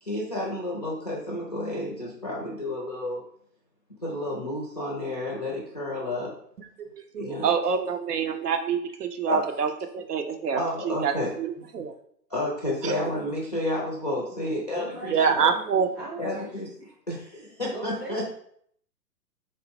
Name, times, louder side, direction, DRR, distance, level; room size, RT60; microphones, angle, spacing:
voice 1, 0.0-3.2 4.0-6.3 7.2-7.5 9.3-9.4 10.5-11.3 12.3-15.1 15.4-15.5 16.2-16.7 17.1-18.2, left 1 dB, 25° left, -3 dB, 0.4 m, -31 dB
voice 2, 6.6-11.9 12.8-13.0 15.1-15.9, right 6 dB, 70° right, 6 dB, 0.6 m, -27 dB
voice 3, 14.7-15.5 16.0-16.6 17.7-18.2, right 3 dB, ahead, -7 dB, 0.7 m, -38 dB
3.9 x 2.0 x 3.5 m, 0.66 s
figure-of-eight pair, 120°, 49 cm